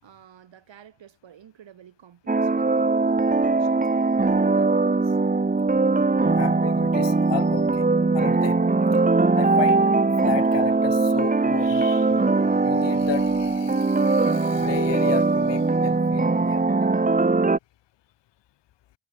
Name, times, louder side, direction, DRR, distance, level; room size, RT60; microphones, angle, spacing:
voice 1, 0.0-5.2, right 9 dB, 80° right, 5.2 m, -50 dB
sound 1, 2.3-17.6, right 3 dB, 20° right, 1.1 m, -21 dB
voice 2, 6.3-7.9 8.1-8.6 9.3-9.9 10.2-12.2 12.6-16.6, left 13 dB, 70° left, 0.8 m, -33 dB
sound 2, 12.1-15.7, right 7 dB, 65° right, 7.4 m, -50 dB
supercardioid pair, 50°, 44 cm